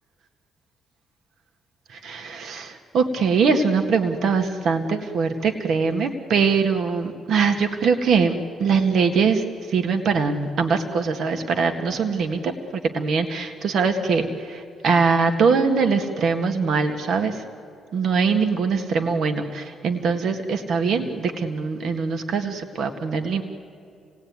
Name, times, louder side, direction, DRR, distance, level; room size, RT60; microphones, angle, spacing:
voice 1, 1.9-12.5 12.9-17.4 17.9-23.4, right 5 dB, 65° right, 6 dB, 1.5 m, -22 dB
28.0 x 18.0 x 9.4 m, 2.6 s
cardioid pair, 90°, 0 cm